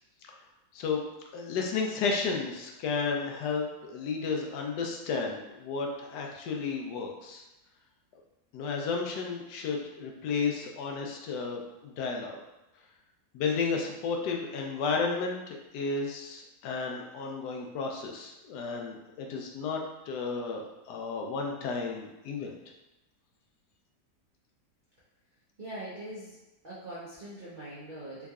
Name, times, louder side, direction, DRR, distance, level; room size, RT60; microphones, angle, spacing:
voice 1, 1.3-7.4 8.5-12.4 13.3-19.8 20.1-22.5, left 4 dB, 75° left, 1 dB, 1.1 m, -32 dB
voice 2, 25.6-26.4 26.6-28.3, right 1 dB, 50° right, -10 dB, 0.5 m, -42 dB
3.5 x 3.0 x 2.3 m, 0.98 s
omnidirectional pair, 1.8 m